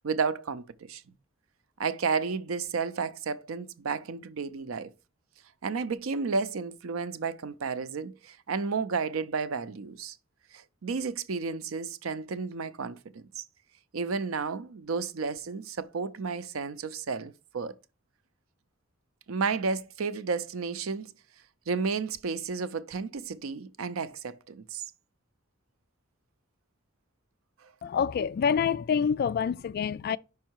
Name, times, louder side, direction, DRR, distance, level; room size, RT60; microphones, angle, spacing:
voice 1, 0.0-1.0 1.8-4.9 5.6-10.2 10.5-13.4 13.9-17.7 19.3-21.1 21.7-24.9, right 5 dB, 90° right, 0.5 m, -32 dB
voice 2, 27.8-30.2, left 7 dB, 50° left, 0.3 m, -27 dB
5.5 x 4.7 x 4.5 m
head